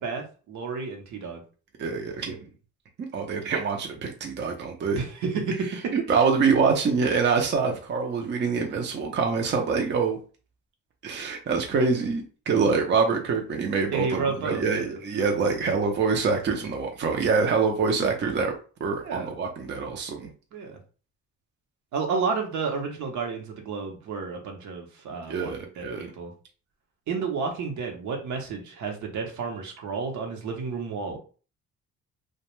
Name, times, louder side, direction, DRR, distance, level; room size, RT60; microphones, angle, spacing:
voice 1, 0.0-1.4 4.9-6.3 13.9-15.0 19.0-19.3 20.5-20.8 21.9-26.3 27.1-31.2, right 5 dB, 65° right, 3 dB, 0.8 m, -31 dB
voice 2, 1.8-2.4 3.1-5.0 5.9-10.2 11.0-18.5 18.8-20.3 25.3-26.1, right 5 dB, 35° right, 2 dB, 0.5 m, -25 dB
2.4 x 2.2 x 3.0 m, 0.37 s
cardioid pair, 100°, 31 cm